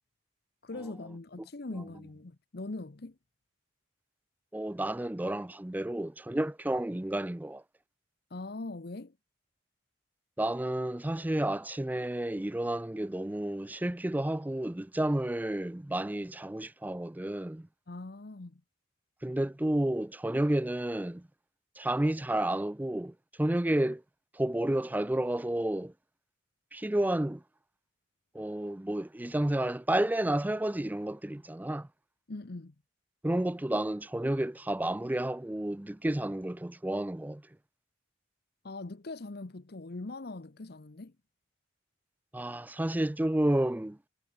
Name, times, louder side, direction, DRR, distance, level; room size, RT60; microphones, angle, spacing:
voice 1, 0.6-3.1 8.3-9.1 17.9-18.6 32.3-32.7 38.6-41.1, left 2 dB, 50° left, 0.8 m, -41 dB
voice 2, 4.5-7.6 10.4-17.7 19.2-21.2 21.8-23.1 23.4-24.0 24.4-25.9 26.7-27.4 28.3-31.9 33.2-37.4 42.3-44.0, right 1 dB, 10° right, 0.4 m, -31 dB
head